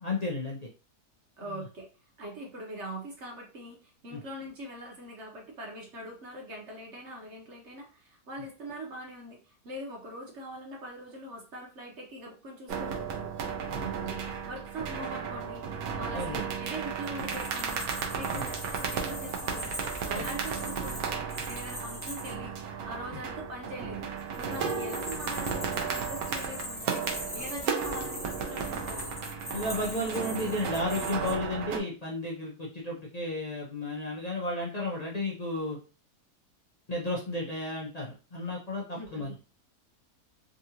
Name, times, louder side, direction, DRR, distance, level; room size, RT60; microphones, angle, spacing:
voice 1, 0.0-0.7 1.4-1.7 4.1-4.2 13.7-13.8 16.1-16.4 18.2-18.4 20.1-20.3 24.6-24.7 29.5-35.8 36.9-39.3, left 2 dB, 55° left, -3 dB, 0.4 m, -33 dB
voice 2, 1.4-1.9 2.2-13.3 13.7-15.7 15.9-19.7 20.0-22.6 22.8-24.1 24.4-29.2 38.9-39.3, right 1 dB, 50° right, 0 dB, 1.1 m, -42 dB
sound 1, 12.7-31.8, right 6 dB, 75° right, 1.2 m, -34 dB
sound 2, 17.0-22.3 24.2-31.3, left 1 dB, 10° left, 0.8 m, -41 dB
3.7 x 2.4 x 2.8 m, 0.33 s
omnidirectional pair, 1.7 m